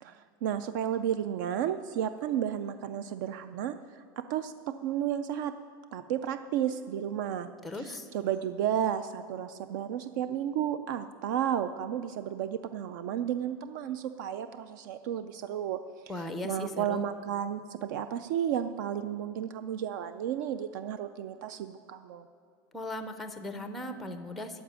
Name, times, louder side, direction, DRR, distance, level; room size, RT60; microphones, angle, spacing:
voice 1, 0.0-3.8 4.2-5.5 5.9-7.5 7.8-15.8 16.4-22.3, right 10 dB, 60° right, 11 dB, 0.5 m, -32 dB
voice 2, 7.6-8.1 16.1-17.1 22.7-24.6, left 1 dB, ahead, 8 dB, 0.5 m, -38 dB
14.5 x 5.1 x 9.5 m, 2.4 s
supercardioid pair, 180°, 11 cm